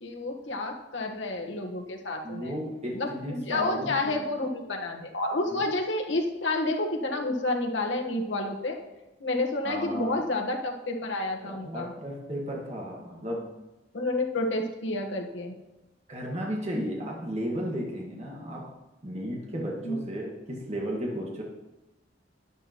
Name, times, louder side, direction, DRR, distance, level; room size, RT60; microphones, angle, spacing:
voice 1, 0.0-2.5 2.9-8.8 9.2-11.9 13.9-15.6 19.8-20.0, left 2 dB, 75° left, 2 dB, 1.4 m, -30 dB
voice 2, 2.2-4.2 5.5-5.6 9.6-10.2 11.4-13.5 16.1-18.7 19.0-21.4, equal, 35° right, -2 dB, 1.7 m, -34 dB
11.0 x 10.5 x 3.0 m, 1.0 s
head